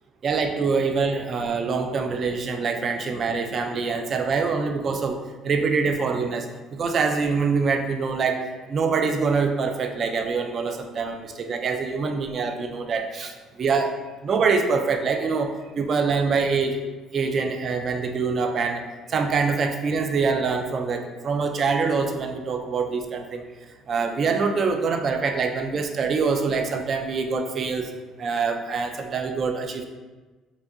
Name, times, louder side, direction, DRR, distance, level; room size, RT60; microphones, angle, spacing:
voice 1, 0.2-5.2 5.4-8.4 8.7-13.9 14.2-16.8 17.1-23.4 23.9-27.9 28.2-29.8, right 5 dB, 35° right, 6 dB, 0.3 m, -25 dB
4.7 x 2.7 x 2.5 m, 1.2 s
cardioid pair, 165°, 0 cm